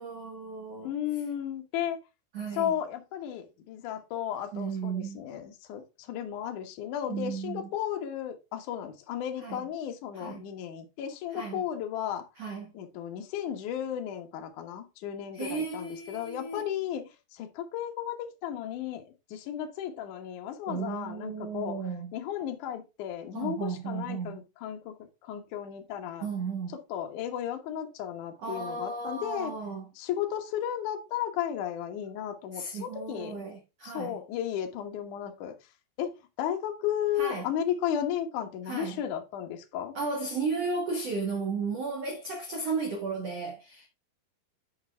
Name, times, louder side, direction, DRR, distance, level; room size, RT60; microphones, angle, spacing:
voice 1, 0.0-0.9 2.3-2.7 4.5-5.2 7.1-7.7 9.4-9.6 10.1-10.4 11.3-11.6 12.4-12.7 15.3-16.6 20.7-22.2 23.3-24.4 26.2-26.8 28.4-29.9 32.5-34.2 37.2-37.5 38.6-39.0 39.9-43.9, right 4 dB, 85° right, 1.4 m, -34 dB
voice 2, 0.8-2.0 2.6-12.2 12.7-17.0 17.3-19.0 19.3-21.8 22.1-24.9 25.2-26.3 26.9-29.5 30.0-33.3 33.8-35.5 36.0-36.1 36.4-39.9, left 10 dB, 75° left, 1.8 m, -34 dB
9.4 x 5.4 x 3.4 m
omnidirectional pair, 5.4 m